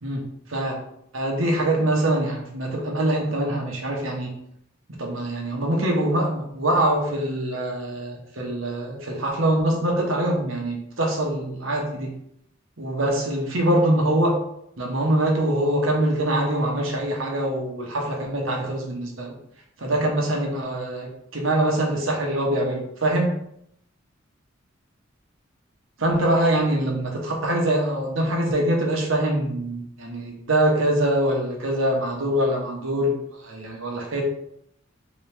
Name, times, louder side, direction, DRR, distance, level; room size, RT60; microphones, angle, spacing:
voice 1, 0.0-0.8 1.1-4.4 4.9-12.2 12.8-14.4 14.8-19.3 19.8-23.3 26.0-34.2, right 1 dB, 75° right, 0 dB, 1.0 m, -24 dB
3.7 x 3.1 x 3.4 m, 0.73 s
head